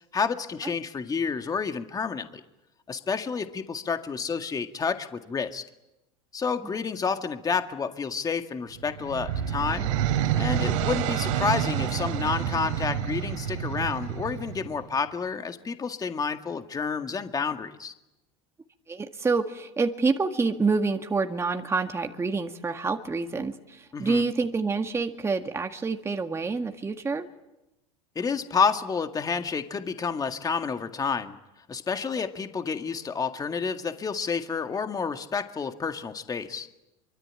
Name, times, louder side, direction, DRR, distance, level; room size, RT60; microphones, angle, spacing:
voice 1, 0.1-2.4 2.9-5.6 6.3-9.9 10.4-17.9 23.9-24.2 28.2-31.4 31.7-36.7, left 5 dB, 20° left, 7 dB, 2.0 m, -29 dB
sound 1, 8.8-14.8, right 10 dB, 75° right, 3.2 m, -28 dB
voice 2, 18.9-27.3 32.2-32.3, right 4 dB, 15° right, 5 dB, 1.8 m, -27 dB
25.0 x 24.5 x 8.9 m, 0.92 s
hypercardioid pair, 100°, 16 cm